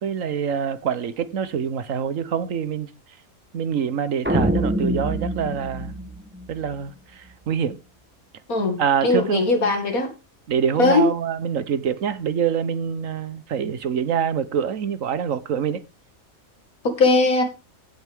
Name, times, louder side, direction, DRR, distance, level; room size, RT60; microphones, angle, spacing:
voice 1, 0.0-2.9 3.5-5.9 6.5-7.8 8.8-9.4 10.5-15.8, right 7 dB, 70° right, 1.3 m, -25 dB
sound 1, 4.3-6.7, right 1 dB, 10° right, 1.2 m, -25 dB
voice 2, 8.5-10.1 10.8-11.1 16.8-17.4, left 3 dB, 85° left, 2.8 m, -19 dB
16.0 x 7.9 x 3.5 m
omnidirectional pair, 1.5 m